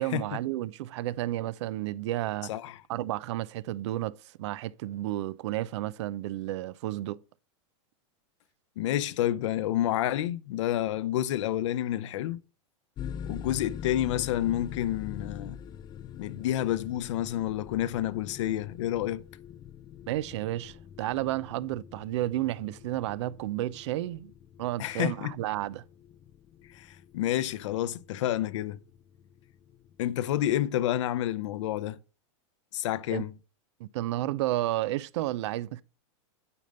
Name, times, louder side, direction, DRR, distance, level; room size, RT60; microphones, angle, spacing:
voice 1, 0.0-2.5 2.9-7.2 20.1-24.3 24.6-25.8 33.1-33.2 33.8-35.8, right 15 dB, 65° right, 0.5 m, -32 dB
voice 2, 8.8-12.4 13.3-15.6 16.2-19.2 24.8-25.3 26.7-28.8 30.0-32.0 32.7-33.3, left 12 dB, 65° left, 0.7 m, -29 dB
sound 1, 13.0-31.5, left 8 dB, 25° left, 0.4 m, -44 dB
9.7 x 5.2 x 5.3 m
hypercardioid pair, 130°, 16 cm